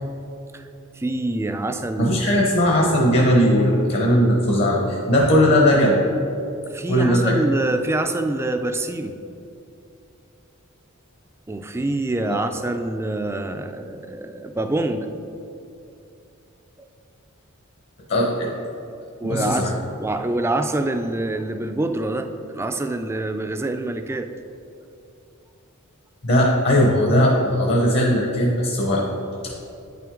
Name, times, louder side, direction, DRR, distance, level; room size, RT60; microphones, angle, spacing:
voice 1, 1.0-2.4 6.7-9.2 11.5-15.1 16.8-16.9 19.2-19.7 20.0-24.3, right 2 dB, 10° right, 7 dB, 0.3 m, -26 dB
voice 2, 2.0-6.0 6.9-7.4 12.3-12.4 18.1-18.5 19.2-19.7 26.2-29.0 29.4-29.5, equal, 55° left, -1 dB, 0.9 m, -18 dB
9.4 x 5.8 x 3.7 m, 2.7 s
head